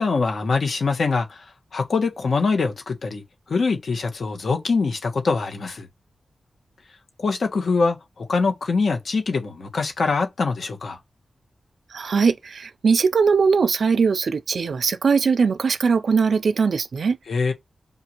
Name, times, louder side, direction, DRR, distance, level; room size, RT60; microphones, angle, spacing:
voice 1, 0.0-3.2 3.5-5.9 7.2-11.0 17.3-17.5, left 4 dB, 70° left, 1.2 m, -23 dB
voice 2, 11.9-17.2, right 5 dB, 70° right, 0.3 m, -20 dB
5.4 x 2.5 x 2.9 m
wide cardioid pair, 85°, 0 cm